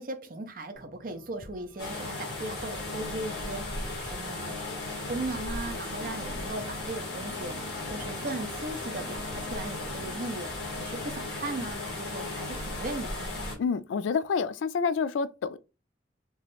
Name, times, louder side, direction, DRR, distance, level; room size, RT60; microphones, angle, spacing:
voice 1, 0.0-3.6 4.0-4.5 5.1-7.6 7.9-13.5, right 2 dB, 45° right, 0.5 m, -37 dB
sound 1, 0.7-11.3, left 1 dB, 5° left, 1.2 m, -51 dB
sound 2, 1.8-13.5, left 2 dB, 60° left, 1.4 m, -36 dB
voice 2, 13.6-15.6, left 5 dB, 90° left, 0.3 m, -28 dB
3.0 x 2.4 x 3.1 m
head